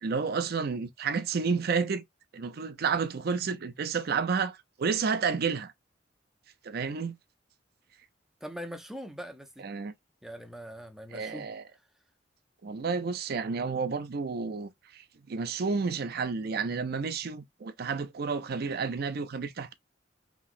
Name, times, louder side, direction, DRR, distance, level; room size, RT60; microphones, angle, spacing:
voice 1, 0.0-2.0 2.3-5.7 6.6-7.2 9.6-9.9 11.1-11.6 12.6-19.7, right 5 dB, 55° right, 0.5 m, -31 dB
voice 2, 8.4-9.7 10.2-11.5, equal, ahead, 0.5 m, -42 dB
3.0 x 2.9 x 2.4 m
head